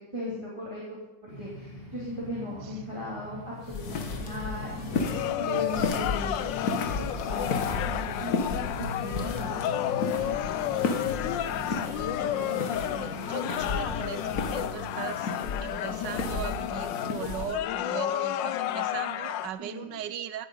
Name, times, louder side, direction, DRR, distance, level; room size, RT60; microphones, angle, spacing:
voice 1, 0.0-6.4 6.9-10.4 19.6-19.9, left 1 dB, 15° right, -7 dB, 3.0 m, -38 dB
sound 1, 1.3-14.9, left 1 dB, 30° left, 4.2 m, -45 dB
sound 2, 3.6-17.5, left 3 dB, 60° left, 1.7 m, -33 dB
sound 3, 5.0-19.5, left 12 dB, 90° left, 1.3 m, -31 dB
voice 2, 11.6-15.4 15.6-20.5, right 9 dB, 80° right, 13 dB, 1.4 m, -39 dB
17.0 x 8.6 x 5.5 m, 1.0 s
omnidirectional pair, 2.0 m